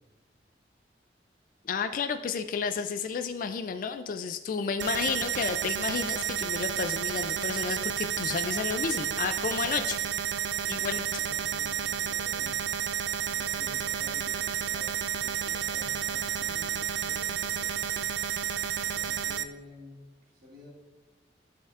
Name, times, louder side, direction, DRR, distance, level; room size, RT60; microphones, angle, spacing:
voice 1, 1.6-10.0 10.6-11.0, left 6 dB, 45° left, 8 dB, 0.3 m, -31 dB
sound 1, 4.8-19.4, right 9 dB, 75° right, 0.4 m, -31 dB
voice 2, 10.7-12.9 13.2-18.4 18.8-20.7, left 1 dB, 50° right, -7 dB, 2.0 m, -50 dB
12.0 x 4.3 x 2.4 m, 1.1 s
head